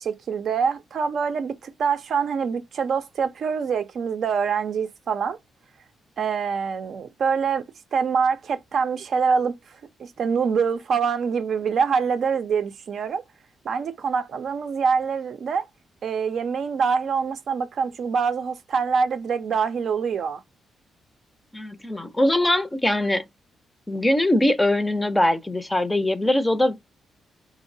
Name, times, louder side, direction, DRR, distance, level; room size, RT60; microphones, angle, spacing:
voice 1, 0.0-5.4 6.2-7.6 7.9-13.2 13.6-15.7 16.0-20.4, right 6 dB, 65° right, 0.4 m, -25 dB
voice 2, 21.5-23.2 23.9-26.8, left 1 dB, 15° left, 0.5 m, -22 dB
2.8 x 2.0 x 2.6 m
supercardioid pair, 65°, 0 cm